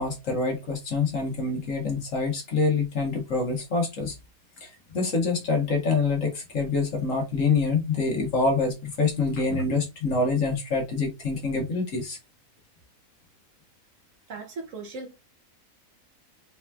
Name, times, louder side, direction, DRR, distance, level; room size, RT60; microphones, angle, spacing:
voice 1, 0.0-4.1 4.6-12.2, left 4 dB, 60° left, 1.6 m, -26 dB
voice 2, 14.3-15.2, right 3 dB, 60° right, 1.2 m, -38 dB
4.3 x 3.0 x 2.3 m
omnidirectional pair, 1.6 m